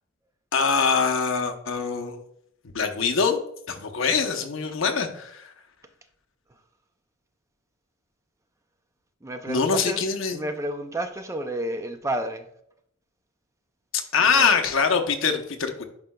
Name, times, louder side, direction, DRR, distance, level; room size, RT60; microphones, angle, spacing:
voice 1, 0.5-2.2 2.7-3.4 3.7-5.5 9.5-10.4 13.9-15.8, left 5 dB, 65° left, 0.8 m, -23 dB
voice 2, 9.2-10.0 10.3-12.5 14.2-14.5, right 1 dB, 15° right, 0.4 m, -31 dB
10.5 x 4.7 x 2.2 m
head